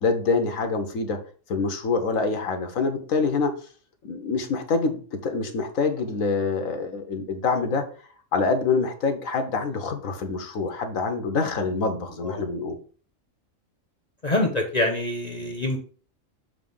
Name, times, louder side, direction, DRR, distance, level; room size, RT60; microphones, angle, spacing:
voice 1, 0.0-1.2 1.5-3.5 4.0-7.8 8.3-12.8, left 4 dB, 90° left, 6 dB, 1.5 m, -25 dB
voice 2, 14.2-15.8, left 1 dB, 35° left, 2 dB, 1.0 m, -25 dB
6.8 x 3.0 x 5.4 m, 0.40 s
omnidirectional pair, 1.4 m